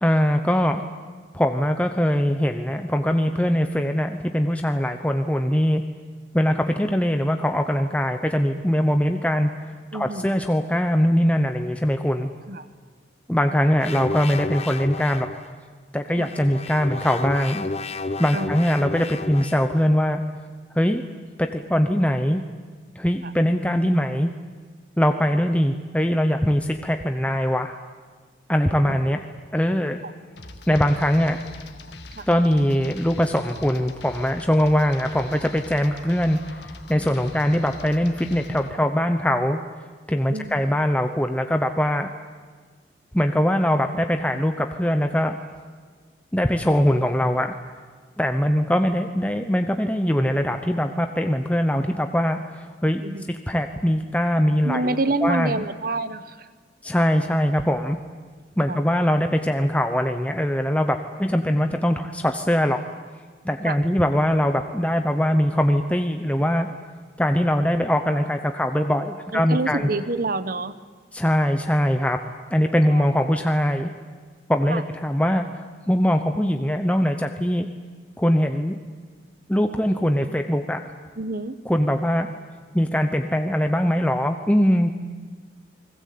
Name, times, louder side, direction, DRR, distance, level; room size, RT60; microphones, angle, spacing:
voice 1, 0.0-0.8 1.3-5.8 6.3-9.5 9.9-12.3 13.3-15.3 15.9-17.7 18.2-20.2 20.8-21.0 21.5-22.4 23.0-24.3 25.0-27.8 28.5-29.2 29.5-30.0 30.7-31.4 32.3-39.6 40.1-42.1 43.1-45.4 46.3-47.5 48.2-53.0 53.3-54.9 55.2-55.6 56.8-58.0 58.6-62.8 63.4-66.7 67.2-69.9 71.1-72.2 72.5-73.9 74.5-75.5 75.9-77.7 78.2-78.8 79.5-80.8 81.7-82.3 82.7-84.9, equal, 5° left, 5 dB, 0.9 m, -22 dB
voice 2, 9.9-10.4 12.5-12.6 16.2-16.3 18.3-18.5 23.2-23.3 28.8-29.0 30.0-30.1 32.2-32.3 40.3-40.6 53.0-53.2 54.6-56.5 58.7-58.8 63.6-63.8 69.3-70.8 72.9-73.0 74.7-74.8 81.2-81.5, right 2 dB, 50° right, 13 dB, 1.1 m, -27 dB
sound 1, 13.8-15.4 16.2-19.8, left 3 dB, 35° left, 0.9 m, -32 dB
sound 2, 30.4-38.7, left 3 dB, 65° left, 1.9 m, -43 dB
28.5 x 20.5 x 8.6 m, 1.5 s
head